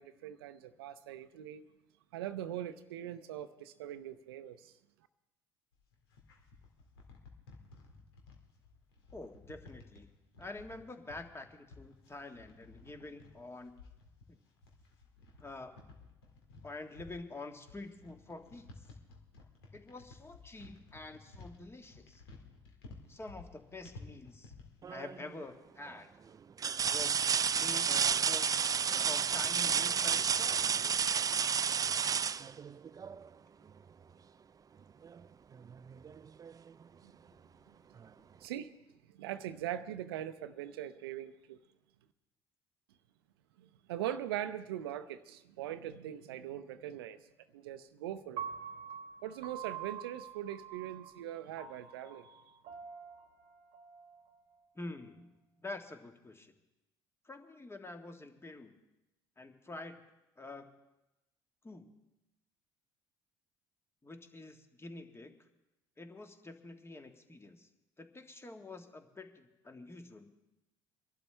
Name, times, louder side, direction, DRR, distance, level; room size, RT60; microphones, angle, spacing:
voice 1, 0.0-1.6 2.1-4.7 37.0-37.1 38.4-38.7 39.1-41.6 43.6-47.3 47.5-48.5 49.2-52.4, right 11 dB, 80° right, 12 dB, 0.6 m, -41 dB
sound 1, 5.7-24.8, left 3 dB, 80° left, 2.1 m, -55 dB
voice 2, 9.1-10.1 10.4-13.7 14.3-14.4 15.4-15.7 16.6-18.9 19.7-22.2 23.1-24.5 24.9-26.1 26.9-27.3 27.5-28.5 29.0-30.9 54.7-55.3 55.6-56.5 57.2-58.7 59.4-60.7 61.6-61.9 64.0-65.3 66.0-67.7 68.0-70.3, left 2 dB, 20° left, 6 dB, 1.6 m, -47 dB
sound 2, 24.8-25.3 25.9-26.0 26.6-33.3 35.0-35.2 35.6-36.7 38.0-38.1, right 7 dB, 30° right, 0.4 m, -31 dB
Piano, 48.4-54.5, right 8 dB, 55° right, 1.1 m, -46 dB
23.5 x 11.5 x 3.4 m, 0.94 s
hypercardioid pair, 60°, 13 cm